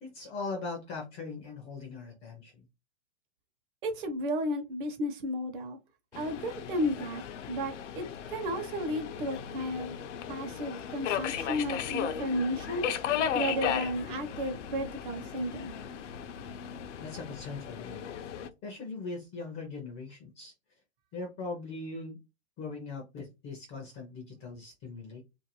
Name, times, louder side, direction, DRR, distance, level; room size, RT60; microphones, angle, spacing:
voice 1, 0.0-2.6 17.0-18.0 18.6-20.5 21.1-22.2 22.6-25.2, left 3 dB, 15° left, 0.4 m, -40 dB
voice 2, 3.8-5.8 6.1-10.0 10.3-12.9 13.3-15.7, equal, 45° right, 0.8 m, -33 dB
Subway metro underground, 6.1-18.5, left 8 dB, 75° left, 0.5 m, -36 dB
2.5 x 2.4 x 2.9 m
hypercardioid pair, 140°, 36 cm